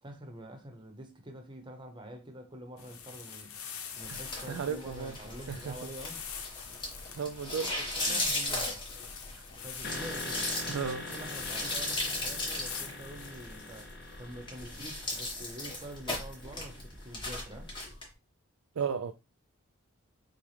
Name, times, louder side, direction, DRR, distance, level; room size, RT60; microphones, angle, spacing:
voice 1, 0.0-3.6 3.9-6.2 7.8-8.8 9.5-10.5 11.0-13.9 14.2-17.7, right 1 dB, 20° right, 0.9 m, -46 dB
sound 1, 2.8-13.8, left 7 dB, 80° left, 0.8 m, -45 dB
sound 2, 4.0-18.0, left 2 dB, 20° left, 1.5 m, -37 dB
voice 2, 4.5-5.2 5.5-5.8 7.1-7.7 8.0-8.3 9.4-9.5 10.7-11.1 18.8-19.1, right 6 dB, 75° right, 0.4 m, -34 dB
sound 3, 9.8-17.6, left 2 dB, 50° left, 0.7 m, -44 dB
6.9 x 2.3 x 3.3 m
head